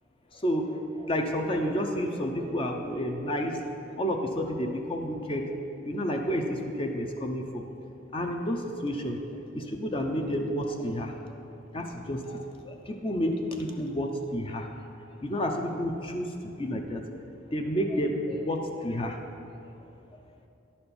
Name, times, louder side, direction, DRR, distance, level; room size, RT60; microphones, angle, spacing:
voice 1, 0.3-0.6 1.0-3.5 4.0-5.4 5.8-7.6 8.1-9.2 9.5-11.4 11.7-14.7 15.2-16.3 16.6-17.0 17.5-19.2, equal, 30° left, 2 dB, 0.6 m, -30 dB
10.5 x 4.3 x 6.9 m, 2.7 s
head